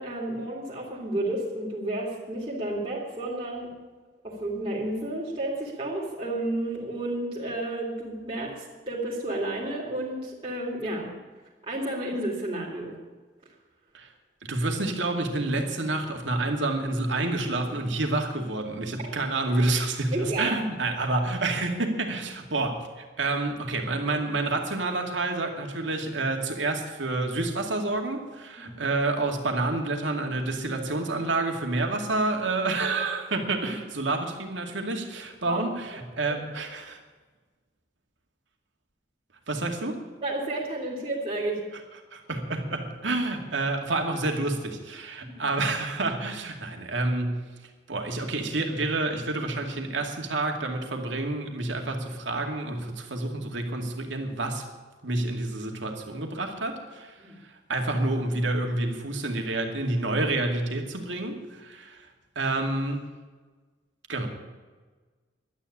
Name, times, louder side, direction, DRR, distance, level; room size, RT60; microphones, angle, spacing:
voice 1, 0.0-3.7 4.2-11.1 11.7-12.9 20.1-20.6 28.6-28.9 35.4-35.6 40.2-41.6 45.2-45.4 57.2-57.4, right 1 dB, 30° right, -5 dB, 2.7 m, -31 dB
voice 2, 14.4-37.0 39.5-40.0 42.1-47.5 47.9-54.7 55.0-62.1 62.4-63.0 64.1-64.3, right 2 dB, 80° right, 3 dB, 2.3 m, -29 dB
12.0 x 9.8 x 9.9 m, 1.3 s
head